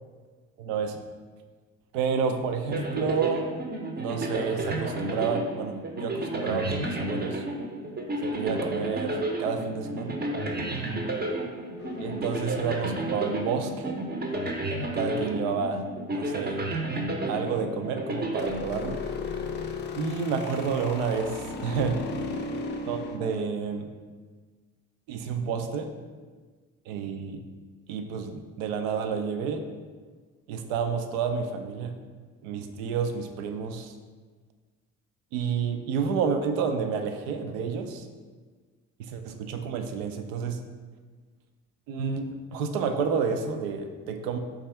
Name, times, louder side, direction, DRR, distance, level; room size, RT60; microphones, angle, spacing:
voice 1, 0.6-1.0 1.9-3.5 4.0-7.4 8.2-10.2 12.0-14.0 14.9-15.8 16.1-16.6 17.3-19.0 19.9-22.0 22.9-23.9 25.1-25.9 26.9-27.4 27.9-29.6 30.5-31.9 32.4-33.9 35.3-38.1 39.0-40.6 41.9-44.4, right 6 dB, 75° right, 6 dB, 0.5 m, -30 dB
sound 1, 2.7-19.3, right 1 dB, 25° right, 0.6 m, -31 dB
sound 2, 11.8-13.4 18.4-23.2, left 4 dB, 25° left, 0.4 m, -36 dB
3.2 x 2.4 x 4.3 m, 1.4 s
hypercardioid pair, 50°, 41 cm